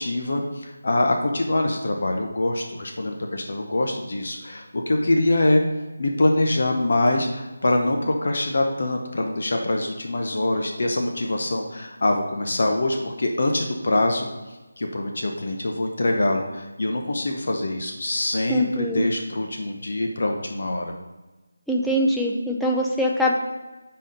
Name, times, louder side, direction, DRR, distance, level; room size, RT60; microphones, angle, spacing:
voice 1, 0.0-5.6 6.0-14.3 14.8-20.9, left 2 dB, 55° left, 2 dB, 0.8 m, -24 dB
voice 2, 18.5-19.1 21.7-23.3, equal, ahead, -2 dB, 0.4 m, -23 dB
5.7 x 4.2 x 5.0 m, 1.1 s
figure-of-eight pair, 175°, 0 cm